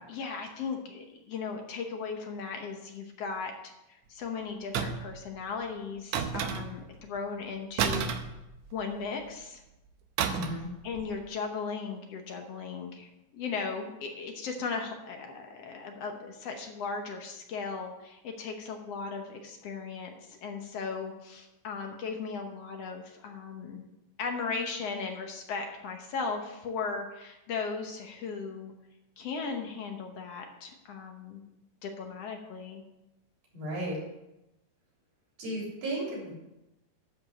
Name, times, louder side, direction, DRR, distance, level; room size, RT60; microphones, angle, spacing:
voice 1, 0.1-8.2 8.7-9.6 10.8-23.8 24.2-28.7 29.2-31.4 31.8-32.8, left 5 dB, 65° left, 3 dB, 1.7 m, -37 dB
sound 1, 4.7-5.2 6.1-6.9 7.8-9.0 10.2-10.7 10.9-11.2, right 7 dB, 70° right, 1.9 m, -31 dB
voice 2, 10.3-10.7 33.5-34.0 35.4-36.3, right 1 dB, 55° right, -4 dB, 4.6 m, -34 dB
12.5 x 5.3 x 6.3 m, 0.95 s
omnidirectional pair, 3.7 m